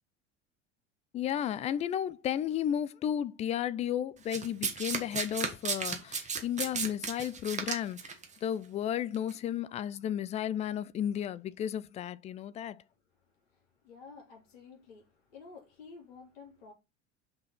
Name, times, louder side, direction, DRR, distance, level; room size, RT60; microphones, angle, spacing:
voice 1, 1.1-8.2 8.4-12.8, left 10 dB, 20° left, 0.4 m, -33 dB
Domestic sounds home sounds, 4.3-8.2 9.1-9.3, right 5 dB, 20° right, 1.7 m, -34 dB
voice 2, 13.1-16.7, left 4 dB, 60° left, 3.5 m, -52 dB
6.0 x 4.9 x 5.7 m
figure-of-eight pair, 75°, 36 cm